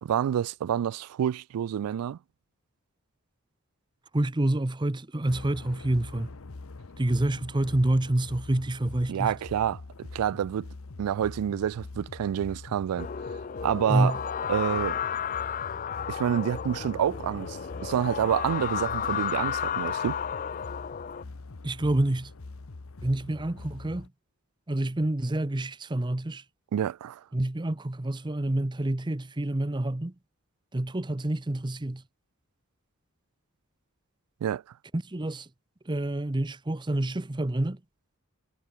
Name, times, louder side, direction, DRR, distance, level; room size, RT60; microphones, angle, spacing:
voice 1, 0.0-2.2 9.1-10.7 11.0-13.1 13.6-14.1 14.5-15.0 16.1-20.2 26.7-27.2 34.4-34.6, right 9 dB, 85° right, 0.3 m, -28 dB
voice 2, 4.1-6.3 7.0-9.3 13.9-14.2 21.6-22.3 23.0-24.1 24.7-26.4 27.3-30.1 30.7-32.0 34.9-35.5 35.9-37.8, right 1 dB, 20° right, 0.7 m, -27 dB
sound 1, 5.3-24.1, left 3 dB, 70° left, 0.9 m, -43 dB
sound 2, 13.0-21.2, left 8 dB, 35° left, 0.4 m, -33 dB
head